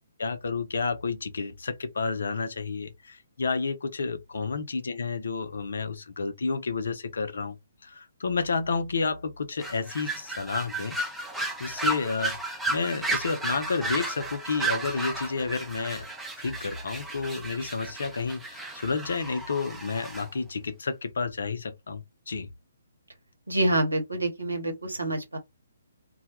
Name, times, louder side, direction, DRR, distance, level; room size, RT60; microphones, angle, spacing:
voice 1, 0.2-7.6 7.8-11.0 11.6-16.1 16.4-22.5, left 4 dB, 60° left, 0.4 m, -30 dB
sound 1, 9.6-20.3, right 2 dB, 5° right, 0.4 m, -33 dB
voice 2, 23.5-25.4, right 1 dB, 75° right, 1.0 m, -27 dB
2.1 x 2.1 x 2.8 m
figure-of-eight pair, 130°, 0 cm